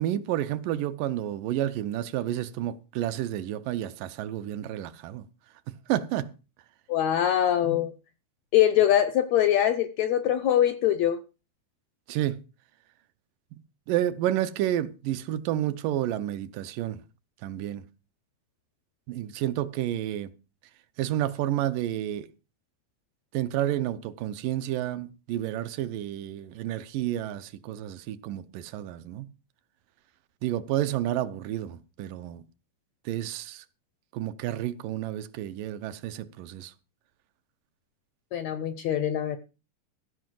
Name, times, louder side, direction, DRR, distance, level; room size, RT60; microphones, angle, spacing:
voice 1, 0.0-5.3 5.9-6.3 12.1-12.4 13.5-13.6 13.9-17.0 17.4-17.8 19.1-20.3 21.0-22.3 23.3-29.3 30.4-32.4 33.1-33.6 34.1-36.7, right 12 dB, 80° right, 2.4 m, -30 dB
voice 2, 6.9-7.9 8.5-11.2 38.3-39.4, left 11 dB, 75° left, 1.6 m, -23 dB
15.0 x 5.5 x 7.6 m
omnidirectional pair, 3.9 m